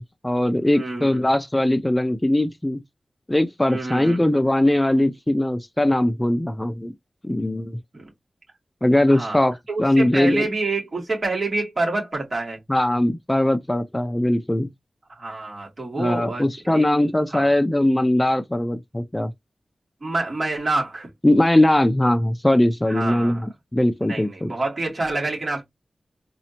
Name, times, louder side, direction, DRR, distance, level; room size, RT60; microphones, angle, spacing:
voice 1, 0.0-2.8 3.3-6.9 7.2-7.8 8.8-10.4 12.7-14.7 16.0-19.3 21.2-24.5, left 1 dB, 15° left, 0.4 m, -20 dB
voice 2, 0.7-1.2 3.7-4.3 7.9-8.1 9.1-9.4 9.7-12.6 15.2-17.5 20.0-21.1 22.9-23.4 24.1-25.6, right 2 dB, 50° right, 2.5 m, -27 dB
4.1 x 2.7 x 2.9 m
cardioid pair, 55°, 0 cm